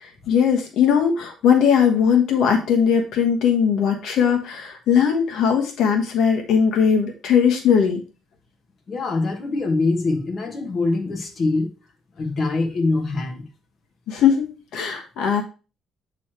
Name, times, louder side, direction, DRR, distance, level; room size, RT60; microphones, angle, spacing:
voice 1, 0.0-8.0 14.1-14.4 14.7-15.4, left 7 dB, 70° left, 3 dB, 1.2 m, -19 dB
voice 2, 8.9-11.7 12.2-13.4, left 3 dB, 35° left, 2 dB, 1.3 m, -23 dB
8.2 x 3.2 x 4.4 m, 0.34 s
cardioid pair, 150°, 0 cm